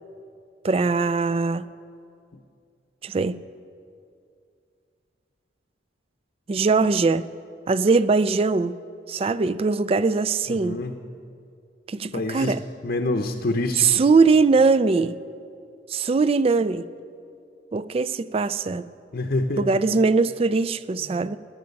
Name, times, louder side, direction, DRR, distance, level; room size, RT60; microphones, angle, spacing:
voice 1, 0.6-1.7 3.0-3.4 6.5-7.3 7.7-8.7 9.1-10.8 11.9-12.6 13.8-15.2 15.9-16.9 17.7-18.9 19.6-21.4, right 4 dB, 30° right, 16 dB, 0.3 m, -21 dB
voice 2, 10.5-10.9 12.1-12.6 12.8-14.0 19.1-19.8, left 2 dB, 50° left, 4 dB, 0.7 m, -26 dB
18.5 x 10.5 x 5.3 m, 2.4 s
head